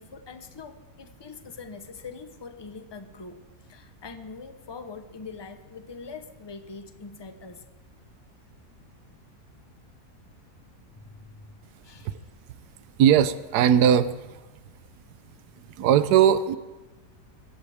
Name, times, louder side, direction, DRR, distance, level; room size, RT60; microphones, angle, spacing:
voice 1, 0.0-3.4 3.7-7.6 11.0-11.5 11.8-12.3, left 4 dB, 20° left, 8 dB, 0.8 m, -43 dB
voice 2, 13.0-14.1 15.8-16.6, right 9 dB, 80° right, 13 dB, 1.2 m, -19 dB
22.5 x 16.0 x 3.5 m, 1.2 s
omnidirectional pair, 1.7 m